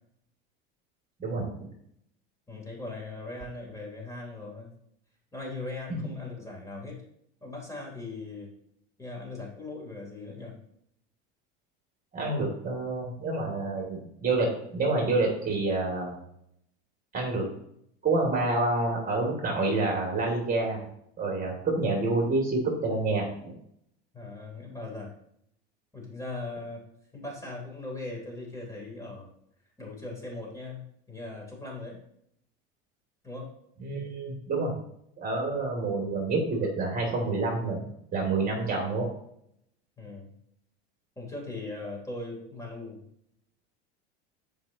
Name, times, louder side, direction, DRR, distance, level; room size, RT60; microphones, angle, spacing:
voice 1, 1.2-1.7 5.9-6.0 12.1-16.1 17.1-17.5 18.0-20.8 21.2-23.6 33.8-34.7 35.2-39.1, right 3 dB, 30° right, 0 dB, 2.9 m, -28 dB
voice 2, 2.5-4.7 5.3-7.0 7.4-8.5 9.0-10.6 24.1-25.1 25.9-26.8 27.1-29.3 29.8-32.0 33.2-33.5 40.0-40.3 41.2-43.0, left 2 dB, 10° left, -2 dB, 3.6 m, -39 dB
13.0 x 5.3 x 3.0 m, 0.72 s
supercardioid pair, 100°, 30 cm